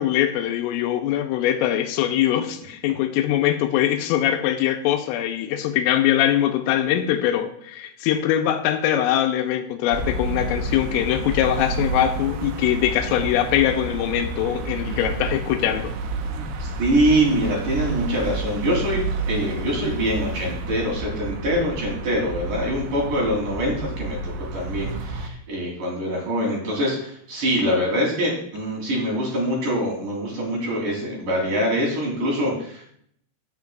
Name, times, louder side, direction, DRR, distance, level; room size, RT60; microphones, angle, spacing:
voice 1, 0.0-16.0, left 11 dB, 85° left, 3.2 m, -22 dB
sound 1, 9.9-25.3, right 2 dB, 90° right, 3.7 m, -30 dB
voice 2, 16.3-32.9, equal, 45° right, 4.3 m, -24 dB
16.0 x 7.4 x 2.4 m
omnidirectional pair, 6.0 m